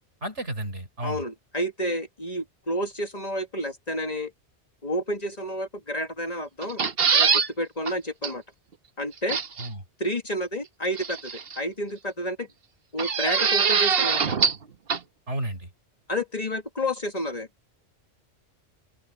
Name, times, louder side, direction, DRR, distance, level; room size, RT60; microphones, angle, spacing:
voice 1, 0.2-1.2 9.6-9.8 15.3-15.7, right 1 dB, 85° right, 5.0 m, -32 dB
voice 2, 1.0-4.3 4.8-6.8 7.1-8.4 9.0-9.4 10.0-12.5 12.9-14.5 16.1-17.5, equal, 35° left, 1.9 m, -30 dB
sound 1, 6.6-7.5 7.9-8.0 8.2-8.3 9.3-9.7 11.0-11.6 13.0-14.6 14.9-15.0, right 6 dB, 60° right, 1.3 m, -23 dB
open air
omnidirectional pair, 1.2 m